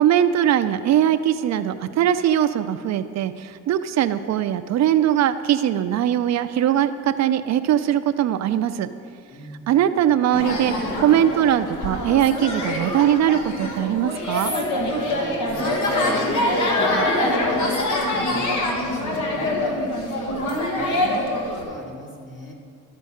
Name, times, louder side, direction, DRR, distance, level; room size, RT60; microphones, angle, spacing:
voice 1, 0.0-8.9 9.7-14.5, right 10 dB, 65° right, 10 dB, 0.5 m, -21 dB
voice 2, 9.3-9.7 14.9-16.4 16.8-22.5, left 1 dB, 40° left, -1 dB, 2.0 m, -36 dB
sound 1, 10.3-21.6, left 1 dB, 75° left, 1.6 m, -24 dB
13.0 x 4.5 x 6.5 m, 2.3 s
cardioid pair, 90°, 30 cm